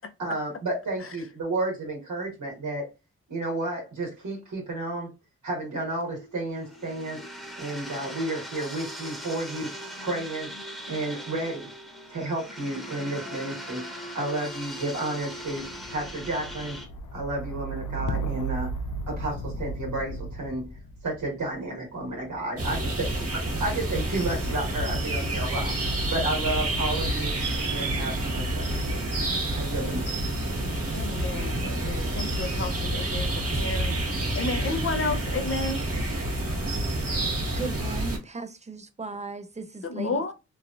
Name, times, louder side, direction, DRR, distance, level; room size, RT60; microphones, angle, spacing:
voice 1, 0.2-2.9 3.3-5.1 5.4-7.2 7.6-9.7 10.0-10.5 10.9-11.7 12.1-16.8 17.1-18.7 19.1-20.6 21.0-25.7 26.1-27.3 27.7-29.0 29.5-30.1 30.7-30.8, right 2 dB, 80° right, 1.3 m, -32 dB
sound 1, 6.0-7.3 7.6-22.6 23.4-24.0, right 2 dB, 90° left, 0.5 m, -38 dB
sound 2, 6.6-16.8, equal, ahead, 1.1 m, -40 dB
sound 3, 22.6-38.2, right 1 dB, 55° right, 1.5 m, -28 dB
voice 2, 30.9-35.8 39.8-40.3, left 3 dB, 50° left, 0.7 m, -32 dB
voice 3, 37.5-40.3, right 4 dB, 25° right, 0.5 m, -37 dB
3.1 x 2.4 x 2.5 m
cardioid pair, 55°, 29 cm